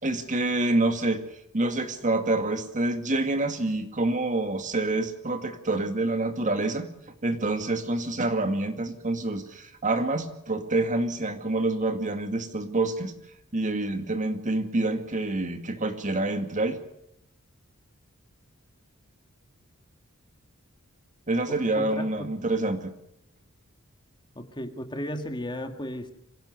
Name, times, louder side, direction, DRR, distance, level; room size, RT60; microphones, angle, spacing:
voice 1, 0.0-1.2 1.5-6.9 7.2-13.1 13.5-16.8 21.3-22.9, right 2 dB, 35° right, 7 dB, 2.2 m, -27 dB
voice 2, 21.5-22.3 24.4-26.1, equal, 20° left, 6 dB, 1.9 m, -35 dB
26.0 x 16.5 x 6.6 m, 0.80 s
head